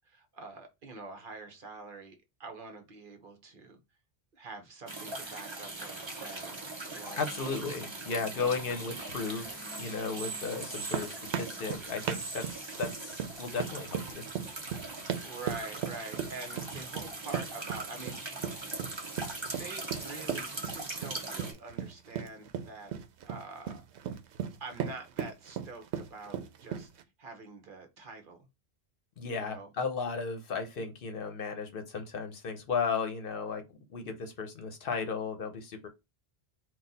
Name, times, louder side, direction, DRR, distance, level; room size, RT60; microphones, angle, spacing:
voice 1, 0.0-3.8 4.3-7.2 8.3-8.8 15.2-18.6 19.2-22.9 23.2-23.8 24.6-26.9 27.2-28.5 29.3-29.7, right 3 dB, 55° right, 0.9 m, -46 dB
sound 1, 4.9-21.5, right 2 dB, 30° right, 0.8 m, -41 dB
voice 2, 7.2-14.2 29.2-33.6 33.9-35.9, left 5 dB, 60° left, 0.9 m, -35 dB
sound 2, 10.6-27.0, right 8 dB, 90° right, 0.9 m, -37 dB
4.1 x 2.3 x 3.9 m
omnidirectional pair, 1.1 m